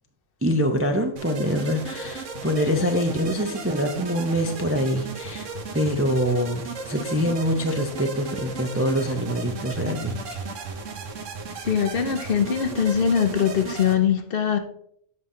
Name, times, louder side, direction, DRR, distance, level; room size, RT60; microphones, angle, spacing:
voice 1, 0.4-5.5 5.7-10.4, equal, 20° right, 0.4 m, -25 dB
sound 1, 1.2-14.0, right 4 dB, 80° right, 1.3 m, -35 dB
voice 2, 11.6-14.6, left 8 dB, 55° left, 0.8 m, -22 dB
7.6 x 5.6 x 3.7 m
omnidirectional pair, 1.3 m